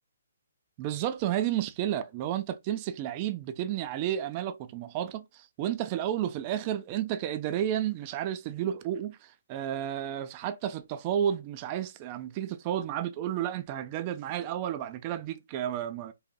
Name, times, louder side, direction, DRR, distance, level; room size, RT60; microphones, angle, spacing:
voice 1, 0.8-16.1, right 11 dB, 30° right, 0.4 m, -32 dB
4.0 x 2.5 x 2.2 m
hypercardioid pair, 140°, 0 cm